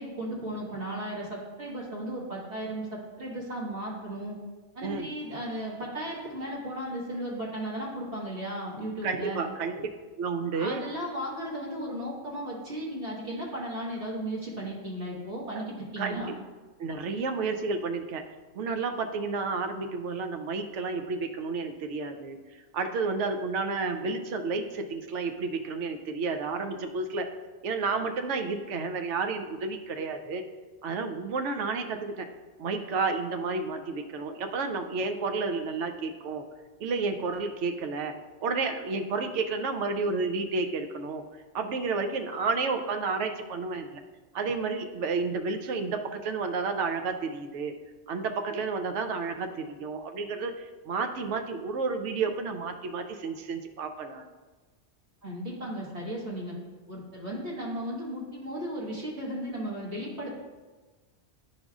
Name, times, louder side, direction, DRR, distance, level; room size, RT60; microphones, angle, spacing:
voice 1, 0.0-4.4 4.8-9.4 10.5-16.3 55.2-56.5 56.9-60.4, right 1 dB, 65° right, -5 dB, 1.9 m, -35 dB
voice 2, 9.0-9.9 10.2-10.8 15.5-15.6 16.0-16.3 16.8-18.2 18.6-22.4 22.7-27.3 27.6-30.4 30.8-32.3 32.6-36.4 36.8-38.1 38.4-41.2 41.5-44.0 44.3-47.7 48.1-54.3, right 4 dB, 90° right, 6 dB, 0.9 m, -31 dB
9.8 x 5.1 x 2.4 m, 1.3 s
omnidirectional pair, 1.2 m